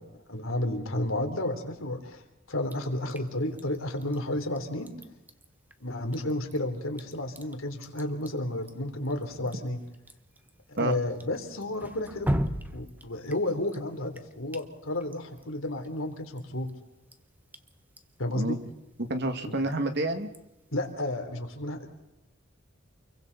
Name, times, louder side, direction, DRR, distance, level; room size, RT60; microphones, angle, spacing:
voice 1, 0.0-2.2 2.5-4.9 5.8-9.8 10.8-12.4 12.7-16.7 18.2-18.6 19.4-19.6 20.7-21.9, left 1 dB, 75° left, 4 dB, 3.5 m, -32 dB
Drip, 2.7-20.9, equal, 10° right, 1.1 m, -41 dB
voice 2, 19.0-20.3, right 2 dB, 55° right, 7 dB, 2.2 m, -29 dB
28.5 x 23.0 x 4.2 m, 0.95 s
head